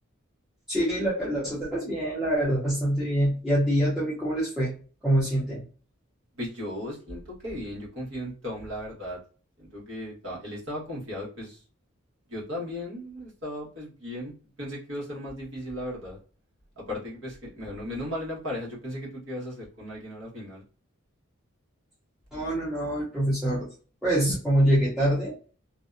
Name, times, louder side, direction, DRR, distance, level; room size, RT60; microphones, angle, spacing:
voice 1, 0.7-4.7 5.0-5.6 22.3-23.7 24.0-25.3, right 1 dB, ahead, -9 dB, 0.6 m, -25 dB
voice 2, 6.4-9.2 9.6-11.6 12.3-16.2 16.8-20.6, left 1 dB, 60° right, -4 dB, 1.1 m, -36 dB
2.6 x 2.1 x 2.4 m, 0.39 s
head